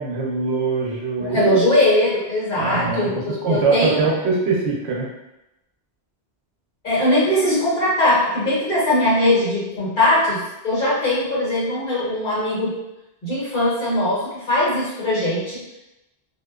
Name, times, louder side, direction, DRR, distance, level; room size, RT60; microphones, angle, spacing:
voice 1, 0.0-1.5 2.5-3.1 3.4-5.1, right 4 dB, 85° right, -2 dB, 0.9 m, -22 dB
voice 2, 1.2-4.0 6.8-12.7 13.2-15.6, left 1 dB, 50° left, -8 dB, 1.1 m, -20 dB
2.5 x 2.2 x 2.3 m, 0.92 s
omnidirectional pair, 1.1 m